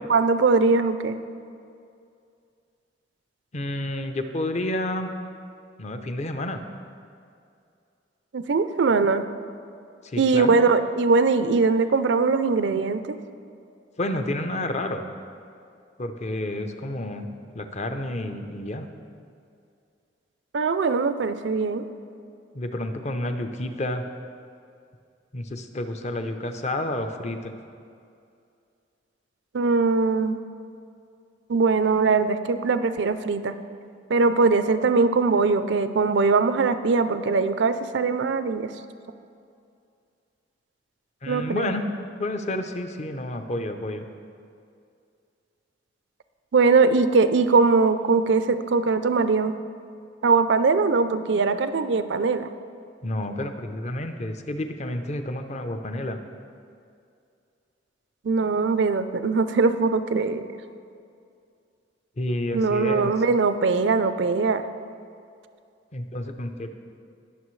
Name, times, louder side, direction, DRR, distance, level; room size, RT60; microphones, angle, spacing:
voice 1, 0.1-1.2 8.3-9.2 10.2-13.2 20.5-21.9 29.5-30.4 31.5-33.5 34.1-38.7 41.3-41.7 46.5-49.6 50.2-52.5 58.2-60.5 62.5-64.6, right 4 dB, 70° right, 11 dB, 0.5 m, -21 dB
voice 2, 3.5-5.1 5.8-6.6 10.0-10.6 14.0-15.0 16.0-17.3 17.5-18.9 22.5-24.0 25.3-27.5 41.2-41.8 42.2-44.0 53.0-56.2 62.2-63.1 65.9-66.7, left 1 dB, 40° left, 7 dB, 0.6 m, -30 dB
19.5 x 6.7 x 3.2 m, 2.4 s
head